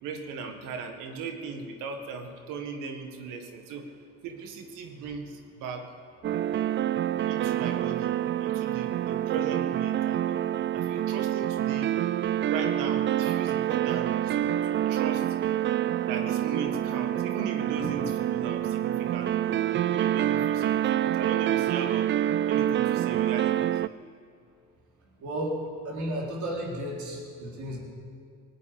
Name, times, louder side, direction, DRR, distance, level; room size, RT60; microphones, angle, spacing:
voice 1, 0.0-3.9 4.2-5.9 7.3-10.4 10.7-12.0 12.5-15.4 16.1-22.1 22.5-23.8, right 5 dB, 80° right, 5 dB, 1.8 m, -37 dB
sound 1, 6.2-23.9, right 11 dB, 35° right, 0.4 m, -27 dB
voice 2, 25.2-25.6 25.8-27.8, right 1 dB, 60° right, -3 dB, 4.6 m, -33 dB
19.5 x 8.6 x 8.6 m, 2.3 s
supercardioid pair, 65°, 32 cm